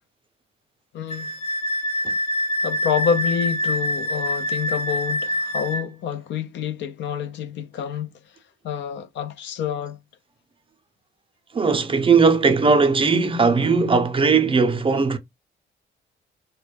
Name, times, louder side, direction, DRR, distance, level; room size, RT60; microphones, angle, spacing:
voice 1, 0.9-1.3 2.6-8.1 8.6-10.0, left 8 dB, 70° left, 0.4 m, -27 dB
Wind instrument woodwind instrument, 1.1-5.9, equal, 30° left, 0.8 m, -25 dB
voice 2, 11.5-15.2, right 4 dB, 25° right, 0.5 m, -18 dB
2.2 x 2.1 x 3.2 m
cardioid pair, 90°, 20 cm